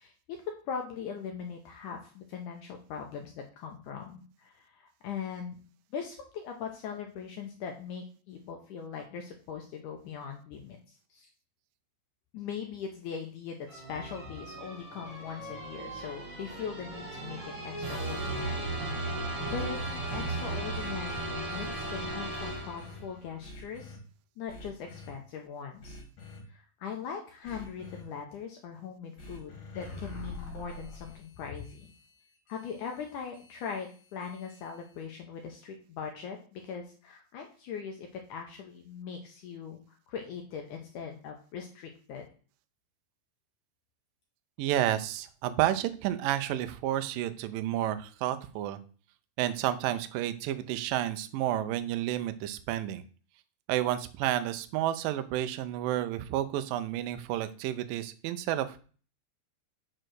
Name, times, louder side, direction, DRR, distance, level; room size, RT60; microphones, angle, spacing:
voice 1, 0.0-5.6 5.9-11.3 12.3-24.0 24.4-26.0 26.5-31.9 32.5-42.3, left 6 dB, 80° left, 3 dB, 1.8 m, -40 dB
sound 1, 13.7-23.2, right 2 dB, 30° right, 2.4 m, -36 dB
sound 2, 19.4-22.1 22.4-23.0 23.4-24.0 24.5-25.1 25.8-26.4 27.4-28.0 29.2-35.0, left 2 dB, 45° left, 3.2 m, -47 dB
voice 2, 44.6-48.8 49.4-53.0 53.7-58.8, right 12 dB, 85° right, 10 dB, 1.9 m, -30 dB
6.4 x 4.5 x 6.2 m, 0.40 s
omnidirectional pair, 4.6 m